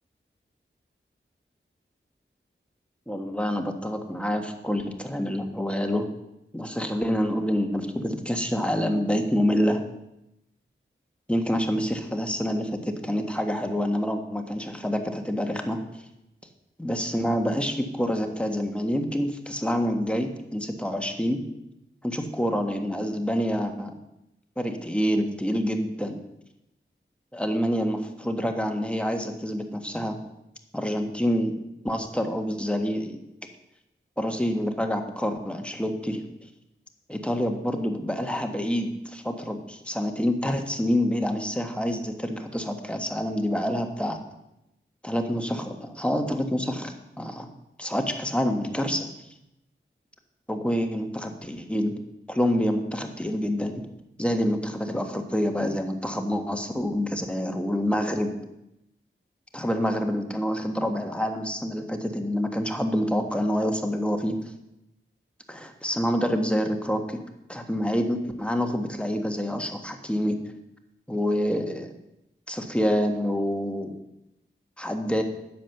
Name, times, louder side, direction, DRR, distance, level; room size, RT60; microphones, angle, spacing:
voice 1, 3.1-6.1 6.5-9.8 11.3-16.0 16.8-21.4 22.0-23.9 24.6-26.2 27.3-30.2 30.7-31.5 31.8-33.2 34.2-36.2 37.1-44.2 45.0-47.5 47.8-49.1 50.5-51.9 52.3-53.8 54.2-58.3 59.5-64.4 65.5-67.2 67.5-70.4 71.1-71.9 72.5-74.0 74.8-75.2, equal, 5° left, 4 dB, 1.4 m, -27 dB
10.0 x 7.5 x 6.6 m, 0.87 s
wide cardioid pair, 65°, 21 cm